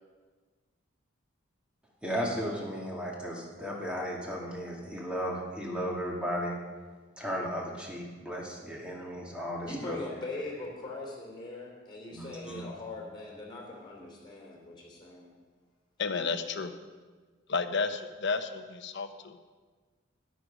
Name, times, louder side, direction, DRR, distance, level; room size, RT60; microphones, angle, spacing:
voice 1, 2.0-6.6 7.2-10.0 12.1-12.6, equal, 5° right, -3 dB, 2.2 m, -35 dB
voice 2, 9.7-15.3, left 2 dB, 25° left, -1 dB, 3.3 m, -41 dB
voice 3, 16.0-16.7 17.5-19.4, left 4 dB, 60° left, 8 dB, 0.8 m, -32 dB
13.0 x 10.5 x 5.2 m, 1.4 s
head